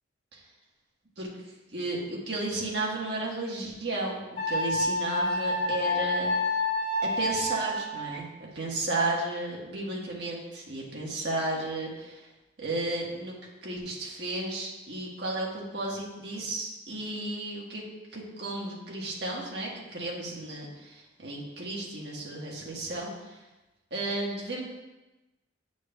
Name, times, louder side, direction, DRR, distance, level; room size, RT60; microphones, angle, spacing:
voice 1, 1.7-6.3 7.0-12.3 12.6-13.3 13.6-17.8 18.1-23.4 23.9-24.6, right 2 dB, 60° right, -3 dB, 1.4 m, -33 dB
Wind instrument woodwind instrument, 4.4-8.2, left 1 dB, 50° left, 2.0 m, -28 dB
8.7 x 6.1 x 2.3 m, 1.1 s
head